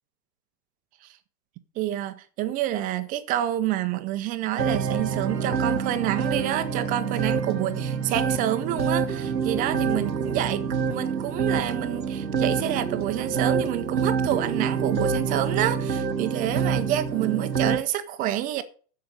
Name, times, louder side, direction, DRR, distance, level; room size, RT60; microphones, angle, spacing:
voice 1, 1.8-18.6, right 12 dB, 15° right, 0.6 m, -28 dB
sound 1, 4.6-17.8, right 6 dB, 90° right, 1.1 m, -27 dB
7.8 x 6.6 x 8.0 m
figure-of-eight pair, 110°, 49 cm